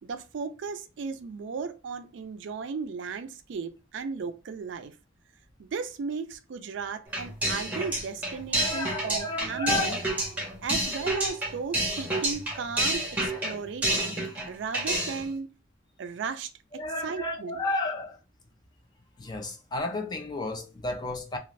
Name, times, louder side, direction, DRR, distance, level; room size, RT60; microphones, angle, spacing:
voice 1, 0.0-4.9 5.6-10.0 10.6-14.2 14.5-15.5 16.0-16.5 17.0-17.6, right 5 dB, 65° right, 0.3 m, -35 dB
sound 1, 7.1-14.5 14.7-15.3, right 1 dB, 10° right, 1.0 m, -29 dB
voice 2, 8.5-10.0 16.7-18.2 19.2-21.4, left 2 dB, 20° left, 0.4 m, -32 dB
2.5 x 2.4 x 3.1 m
head